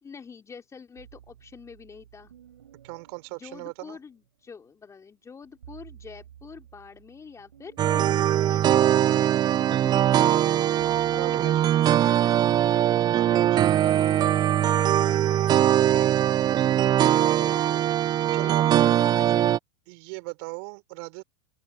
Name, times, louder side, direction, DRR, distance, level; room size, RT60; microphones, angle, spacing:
voice 1, 0.0-2.3 3.4-12.6 13.1-16.2 16.9-17.9 18.4-19.5, left 5 dB, 20° left, 3.4 m, -46 dB
sound 1, 1.0-4.5 5.4-9.9 10.3-19.6, right 10 dB, 85° right, 6.7 m, -53 dB
voice 2, 2.8-4.0 11.1-11.5 13.1-13.6 18.3-18.6 19.9-21.2, right 33 dB, 60° right, 5.3 m, -38 dB
sound 2, 7.8-19.6, right 11 dB, 30° right, 0.4 m, -21 dB
open air
hypercardioid pair, 100°, 14 cm